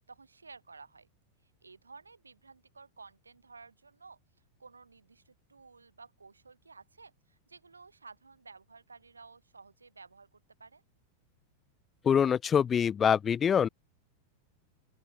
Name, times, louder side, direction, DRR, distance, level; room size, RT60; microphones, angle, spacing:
voice 1, 0.1-1.1 1.4-4.2 4.6-10.8, right 4 dB, 75° right, 5.2 m, -54 dB
voice 2, 12.0-13.7, left 7 dB, 20° left, 0.5 m, -25 dB
open air
figure-of-eight pair, 90°, 0 cm